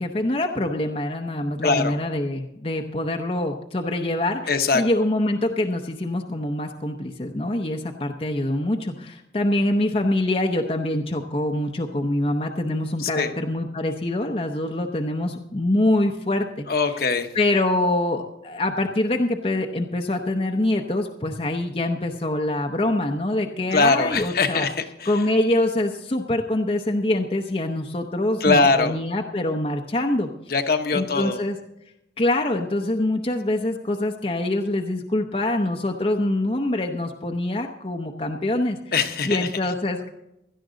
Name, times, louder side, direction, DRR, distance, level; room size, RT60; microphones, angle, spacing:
voice 1, 0.0-16.7 17.3-24.7 25.1-30.3 30.9-31.6 32.2-38.8 39.2-40.1, left 1 dB, 30° left, 3 dB, 0.7 m, -24 dB
voice 2, 1.6-2.0 4.5-4.8 13.0-13.3 16.7-17.3 23.7-25.1 28.4-29.0 30.5-31.4 38.9-39.5, left 4 dB, 55° left, 6 dB, 1.0 m, -21 dB
17.0 x 12.5 x 3.9 m, 0.87 s
head